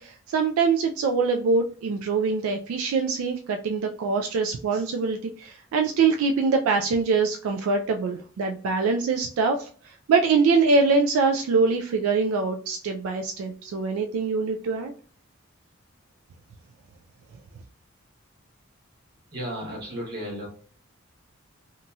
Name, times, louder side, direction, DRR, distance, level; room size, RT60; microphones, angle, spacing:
voice 1, 0.0-14.9, right 4 dB, 85° right, 4 dB, 0.3 m, -24 dB
voice 2, 19.3-20.5, equal, 50° right, -3 dB, 1.2 m, -33 dB
2.9 x 2.7 x 2.2 m, 0.44 s
head